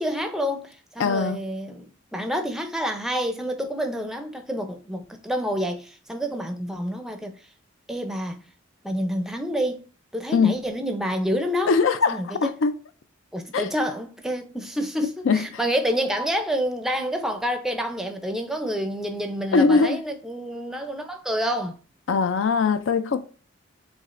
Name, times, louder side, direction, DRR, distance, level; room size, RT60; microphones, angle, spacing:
voice 1, 0.0-7.4 7.9-8.4 8.8-9.9 10.1-11.8 12.1-12.5 13.3-21.8, equal, ahead, 0.5 m, -28 dB
voice 2, 1.0-1.4 10.3-10.6 11.7-12.7 13.5-13.7 15.3-15.6 19.5-20.0 22.1-23.2, left 4 dB, 70° left, 0.4 m, -21 dB
7.1 x 2.4 x 2.5 m
head